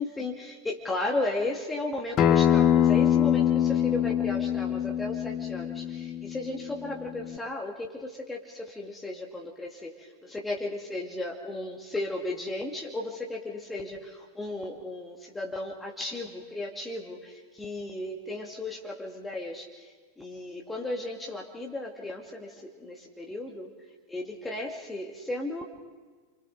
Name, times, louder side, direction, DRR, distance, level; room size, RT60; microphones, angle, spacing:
voice 1, 0.0-23.7 24.1-25.7, left 2 dB, 10° left, 0 dB, 2.0 m, -35 dB
Acoustic guitar, 2.2-7.4, left 10 dB, 35° left, 0.9 m, -24 dB
29.5 x 25.5 x 3.9 m, 1.4 s
figure-of-eight pair, 90°, 0 cm